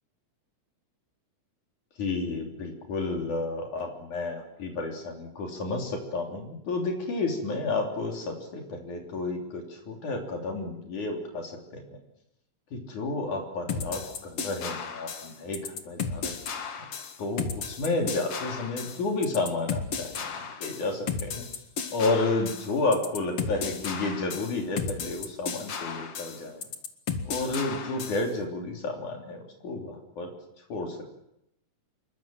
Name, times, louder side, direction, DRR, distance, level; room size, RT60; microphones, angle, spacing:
voice 1, 2.0-11.8 12.7-16.4 17.2-21.4 21.9-26.6 27.2-30.3 30.7-31.1, left 3 dB, 80° left, 1 dB, 4.8 m, -31 dB
sound 1, 13.7-28.3, left 6 dB, 55° left, 2.7 m, -34 dB
27.5 x 22.5 x 7.7 m, 0.84 s
omnidirectional pair, 3.4 m